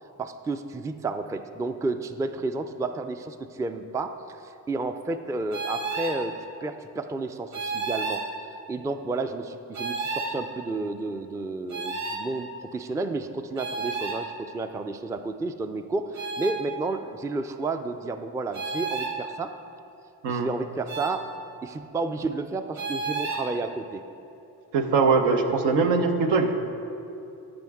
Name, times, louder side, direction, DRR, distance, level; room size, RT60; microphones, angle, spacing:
voice 1, 0.2-8.2 8.7-19.5 20.3-21.3 21.6-24.0, right 3 dB, 10° right, 9 dB, 0.3 m, -31 dB
sound 1, 5.5-6.2 7.5-8.3 9.7-10.4 11.7-12.2 13.6-14.2 16.1-16.6 18.5-19.1 20.9-21.2 22.8-23.4, right 4 dB, 40° right, 1.5 m, -31 dB
voice 2, 24.7-26.5, right 4 dB, 80° right, 5 dB, 0.9 m, -22 dB
13.5 x 5.2 x 3.5 m, 2.7 s
supercardioid pair, 60°, 42 cm